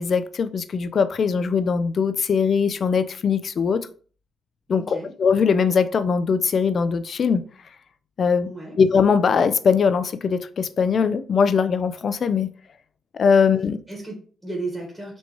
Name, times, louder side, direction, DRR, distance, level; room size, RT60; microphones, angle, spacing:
voice 1, 0.0-3.9 4.7-7.4 8.2-8.5 8.8-12.5 13.1-13.8, left 6 dB, 50° left, 0.4 m, -21 dB
voice 2, 4.7-5.1 8.4-8.8 13.9-15.2, right 2 dB, 10° right, 1.4 m, -34 dB
4.4 x 2.9 x 3.0 m
cardioid pair, 90°, 0 cm